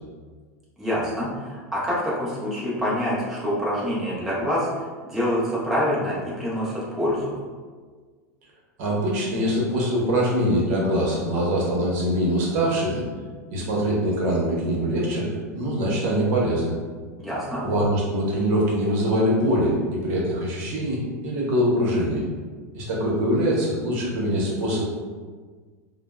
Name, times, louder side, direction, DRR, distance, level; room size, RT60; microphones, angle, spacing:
voice 1, 0.8-7.3 17.2-17.6, equal, 5° right, -8 dB, 0.5 m, -26 dB
voice 2, 8.8-13.1 13.5-16.7 17.6-22.2 22.7-24.8, equal, 55° right, -4 dB, 0.9 m, -23 dB
3.3 x 2.0 x 2.2 m, 1.5 s
supercardioid pair, 135°, 9 cm